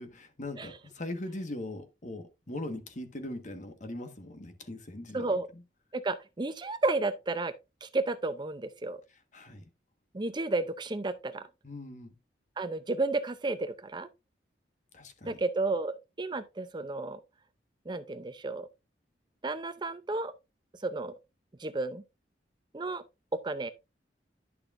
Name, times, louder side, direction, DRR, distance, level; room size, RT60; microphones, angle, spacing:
voice 1, 0.0-5.6 9.3-9.7 11.6-12.1 14.9-15.4, left 1 dB, 45° left, 1.5 m, -40 dB
voice 2, 5.1-5.5 5.9-7.5 7.8-9.0 10.1-11.4 12.6-14.1 15.2-17.2 17.9-18.7 19.4-20.3 20.8-21.1 21.6-22.0 22.7-23.0 23.3-23.7, right 3 dB, 25° right, 0.5 m, -32 dB
11.0 x 6.5 x 2.5 m
head